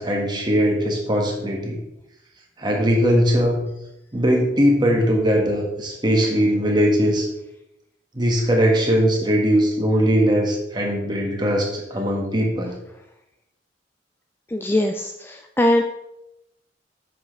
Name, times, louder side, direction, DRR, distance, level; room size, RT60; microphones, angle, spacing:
voice 1, 0.0-1.8 2.6-3.6 4.1-7.3 8.1-12.7, equal, 25° right, 0 dB, 1.5 m, -20 dB
voice 2, 14.5-15.8, left 1 dB, 10° left, 5 dB, 0.3 m, -21 dB
8.6 x 6.3 x 3.2 m, 0.87 s
head